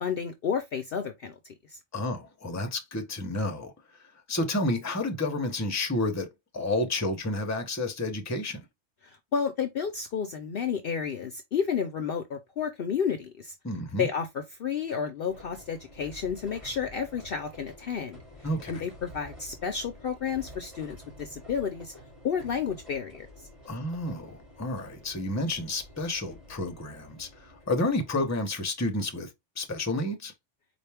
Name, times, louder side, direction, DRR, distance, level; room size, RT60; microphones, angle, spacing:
voice 1, 0.0-1.8 9.0-13.5 14.0-18.2 18.7-21.9 22.2-23.3, left 7 dB, 60° left, 0.7 m, -31 dB
voice 2, 1.9-3.7 4.3-8.7 13.6-14.1 18.4-18.8 23.7-29.3 29.6-30.3, left 2 dB, 15° left, 0.7 m, -30 dB
sound 1, 15.3-28.3, left 1 dB, 25° right, 2.5 m, -50 dB
4.4 x 2.5 x 3.4 m
omnidirectional pair, 1.3 m